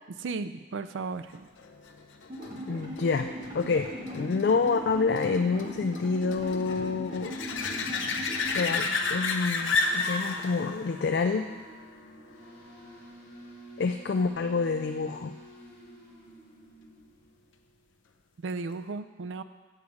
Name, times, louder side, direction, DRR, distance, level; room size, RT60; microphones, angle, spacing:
voice 1, 0.2-1.5 8.7-9.3 18.4-19.4, right 4 dB, 80° right, 11 dB, 0.4 m, -36 dB
sound 1, 1.6-12.9 18.5-18.6, left 4 dB, 85° left, 0.7 m, -33 dB
sound 2, 2.3-8.6, equal, 45° right, 2.1 m, -39 dB
voice 2, 2.7-7.4 8.5-11.5 13.8-15.3, left 4 dB, 60° left, 6 dB, 0.3 m, -28 dB
sound 3, 7.3-17.6, right 2 dB, 15° left, 3.0 m, -50 dB
8.1 x 4.9 x 7.1 m, 1.3 s
head